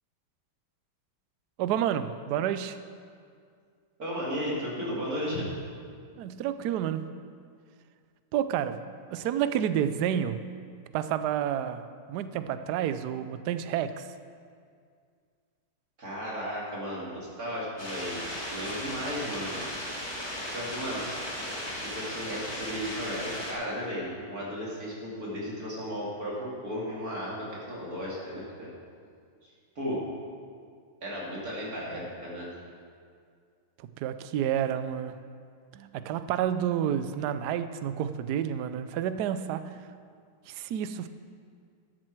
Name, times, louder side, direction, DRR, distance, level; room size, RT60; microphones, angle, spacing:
voice 1, 1.6-2.8 6.2-7.2 8.3-8.8 9.1-10.4 10.9-14.1 34.0-35.2 35.7-39.7 40.5-41.1, right 10 dB, 75° right, 11 dB, 0.9 m, -30 dB
voice 2, 4.0-5.5 16.0-18.2 18.5-19.6 20.5-21.0 21.8-28.7 29.7-30.0 31.0-32.5, equal, 45° right, -5 dB, 3.0 m, -35 dB
sound 1, 17.8-23.5, equal, 15° left, 1.7 m, -36 dB
13.5 x 10.5 x 4.6 m, 2.2 s
omnidirectional pair, 2.3 m